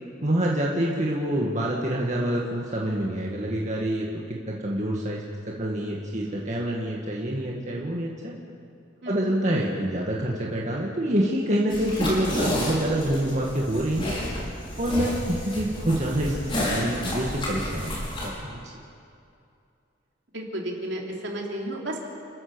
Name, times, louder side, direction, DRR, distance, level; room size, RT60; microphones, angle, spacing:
voice 1, 0.2-8.3 9.1-14.2 14.8-17.9 18.2-18.6, right 1 dB, 40° right, -3 dB, 2.0 m, -27 dB
sound 1, 11.7-18.3, equal, 30° left, 5.6 m, -30 dB
voice 2, 20.3-22.0, right 1 dB, 65° right, -1 dB, 3.5 m, -32 dB
30.0 x 14.5 x 7.0 m, 2.6 s
head